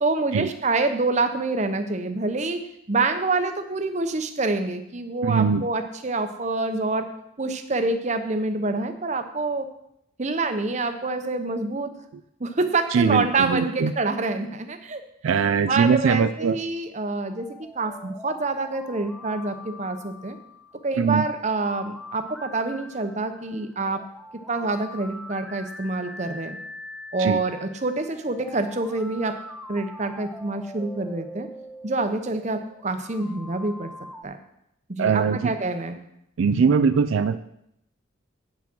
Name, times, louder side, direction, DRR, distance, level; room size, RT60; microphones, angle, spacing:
voice 1, 0.0-2.6 2.9-7.1 7.4-9.7 10.2-11.9 12.4-15.0 15.4-17.5 17.7-20.4 20.8-24.0 24.3-26.6 27.1-29.4 29.7-31.5 31.8-33.9 34.2-34.4 34.9-36.0, right 3 dB, 35° right, 8 dB, 0.7 m, -26 dB
voice 2, 5.2-5.6 12.9-13.9 15.2-16.6 21.0-21.3 27.2-27.4 35.0-35.5 36.4-37.4, right 6 dB, 75° right, 12 dB, 0.4 m, -21 dB
sound 1, 17.1-34.2, left 1 dB, ahead, 0.3 m, -43 dB
8.6 x 6.0 x 6.1 m, 0.78 s
head